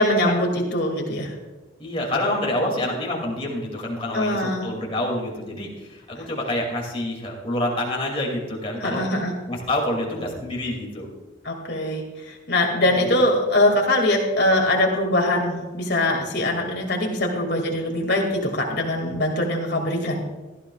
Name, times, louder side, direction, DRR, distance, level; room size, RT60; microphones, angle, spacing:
voice 1, 0.0-1.3 4.1-4.6 8.8-9.3 11.4-20.2, left 1 dB, 60° left, 0 dB, 2.3 m, -22 dB
voice 2, 1.8-9.0 9.5-11.1 12.9-13.2, left 1 dB, 30° left, -1 dB, 2.5 m, -27 dB
15.5 x 12.5 x 2.4 m, 1.2 s
head